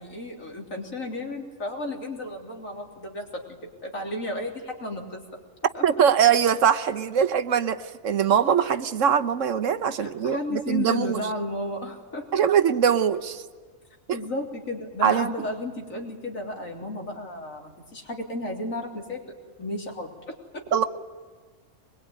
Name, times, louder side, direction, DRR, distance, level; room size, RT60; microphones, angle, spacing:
voice 1, 0.0-5.4 5.7-5.8 10.0-12.4 14.1-19.2 19.6-20.9, left 1 dB, 85° left, 0 dB, 3.9 m, -33 dB
voice 2, 5.8-11.2 12.3-13.4 15.0-15.3 20.7-20.8, right 8 dB, 70° right, 12 dB, 1.3 m, -22 dB
23.0 x 21.5 x 9.4 m, 1.4 s
omnidirectional pair, 1.4 m